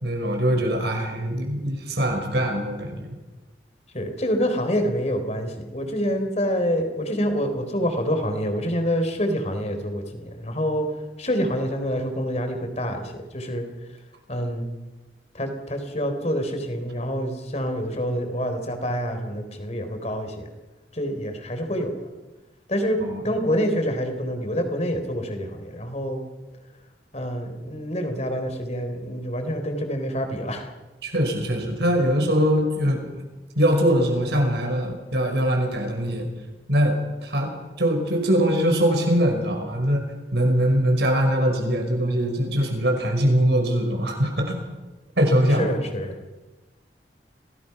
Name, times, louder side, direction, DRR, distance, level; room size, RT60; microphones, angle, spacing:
voice 1, 0.0-3.1 23.0-23.2 31.0-33.1 33.6-36.3 36.7-37.5 37.8-40.0 40.3-44.6 45.2-45.7, equal, 70° right, 4 dB, 5.3 m, -22 dB
voice 2, 3.9-10.9 11.2-13.6 14.3-14.7 15.3-20.5 20.9-21.9 22.7-26.2 27.1-30.7 45.6-46.1, equal, 40° left, 6 dB, 3.7 m, -27 dB
26.5 x 18.0 x 5.9 m, 1.1 s
head